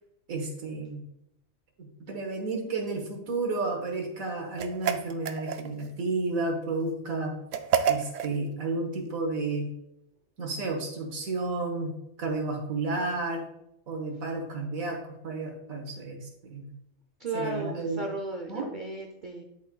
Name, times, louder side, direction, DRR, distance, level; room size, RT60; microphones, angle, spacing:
voice 1, 0.3-1.0 1.8-7.4 7.9-9.7 10.4-11.9 12.2-13.4 13.9-16.7 17.3-18.0 18.5-18.7, right 3 dB, 90° right, 2 dB, 1.7 m, -32 dB
sound 1, 4.6-5.9 7.5-8.4, right 8 dB, 70° right, 0.9 m, -28 dB
voice 2, 17.2-19.4, right 2 dB, 50° right, 2 dB, 0.7 m, -35 dB
11.0 x 4.3 x 2.3 m, 0.79 s
omnidirectional pair, 1.4 m